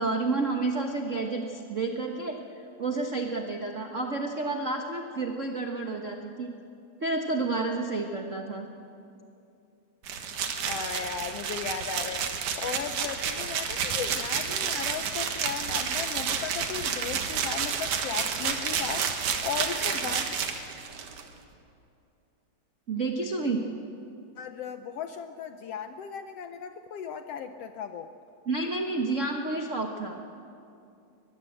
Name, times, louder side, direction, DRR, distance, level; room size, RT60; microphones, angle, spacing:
voice 1, 0.0-2.4 2.8-6.5 7.0-8.7 22.9-23.6 28.4-30.2, right 3 dB, 60° right, 3 dB, 0.8 m, -30 dB
sound 1, 10.0-21.2, right 7 dB, 80° right, 3.0 m, -30 dB
voice 2, 10.7-12.3 12.6-20.4 24.4-28.1, left 7 dB, 75° left, 8 dB, 1.5 m, -36 dB
22.5 x 21.0 x 7.8 m, 2.6 s
omnidirectional pair, 3.4 m